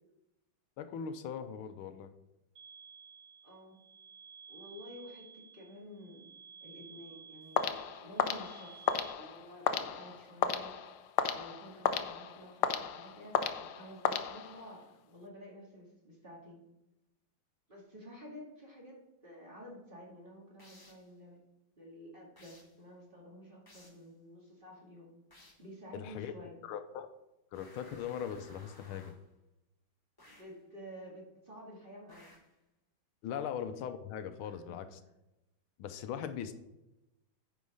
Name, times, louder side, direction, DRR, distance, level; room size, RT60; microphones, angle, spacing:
voice 1, 0.8-2.1 25.9-26.3 26.6-27.1 27.5-29.1 33.2-35.0 35.8-36.5, left 8 dB, 85° left, 10 dB, 1.5 m, -40 dB
sound 1, 2.6-9.1, right 6 dB, 65° right, 2.7 m, -54 dB
voice 2, 3.4-3.8 4.5-6.3 6.6-8.9 9.1-16.6 17.7-21.4 21.8-25.1 25.6-26.6 30.3-32.3 33.3-33.4 34.4-34.8 36.2-36.3, equal, 25° right, -3 dB, 2.2 m, -51 dB
sound 2, 7.6-14.8, left 8 dB, 70° left, 1.0 m, -34 dB
sound 3, 20.6-21.1 22.4-22.8 23.7-24.1 25.3-25.7 27.5-29.3 30.2-30.6 32.1-32.6, left 1 dB, 20° left, 0.6 m, -59 dB
9.3 x 5.0 x 4.9 m, 0.93 s
omnidirectional pair, 2.3 m